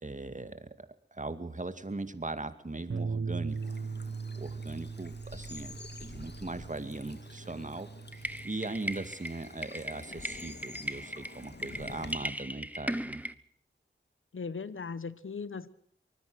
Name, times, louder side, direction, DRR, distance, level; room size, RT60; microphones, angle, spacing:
voice 1, 0.0-3.8 4.3-7.9 8.4-13.2, right 2 dB, 40° right, 10 dB, 2.3 m, -39 dB
Bass guitar, 2.9-9.1, right 5 dB, 80° right, 1.3 m, -39 dB
Bird vocalization bird call bird song / Stream, 3.5-12.1, left 3 dB, 55° left, 2.5 m, -49 dB
sound 1, 8.1-13.3, right 1 dB, 5° right, 1.4 m, -38 dB
voice 2, 14.3-15.7, left 5 dB, 85° left, 16 dB, 1.2 m, -38 dB
24.5 x 20.0 x 6.4 m, 0.64 s
wide cardioid pair, 50°, 20 cm